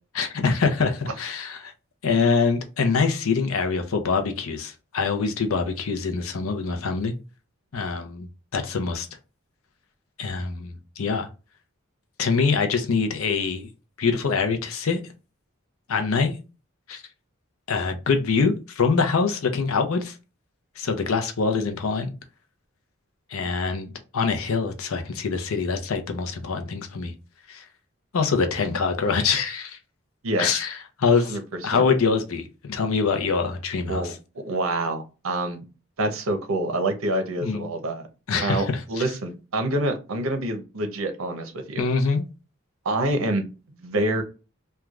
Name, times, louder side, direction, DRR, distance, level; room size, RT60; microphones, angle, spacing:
voice 1, 0.1-1.7 2.0-7.1 7.7-8.3 8.5-9.1 10.2-11.3 12.2-13.7 14.0-15.0 15.9-16.4 16.9-17.0 17.7-20.1 20.8-22.1 23.3-27.1 27.5-27.6 28.1-29.8 30.4-34.1 37.4-37.7 38.3-39.0 41.8-42.2, left 4 dB, 85° left, 0.6 m, -24 dB
voice 2, 30.2-30.6 31.3-31.4 31.7-31.8 33.9-34.1 34.4-35.6 36.0-38.1 38.4-41.9 42.8-43.5 43.8-44.2, right 1 dB, 80° right, 0.7 m, -26 dB
3.1 x 2.3 x 2.4 m
head